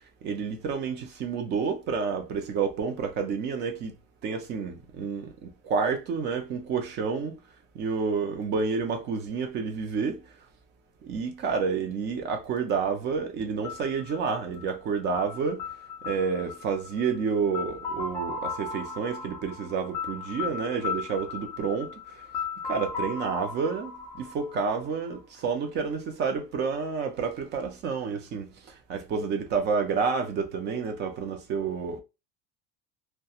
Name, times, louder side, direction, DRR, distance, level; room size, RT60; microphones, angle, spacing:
voice 1, 0.2-3.9 4.2-7.4 7.8-10.2 11.0-15.6 16.0-21.9 22.7-28.5 28.9-32.0, right 5 dB, 30° right, 0.4 m, -29 dB
sound 1, 13.6-25.4, left 5 dB, 10° left, 0.6 m, -37 dB
2.4 x 2.2 x 2.7 m
cardioid pair, 170°, 35 cm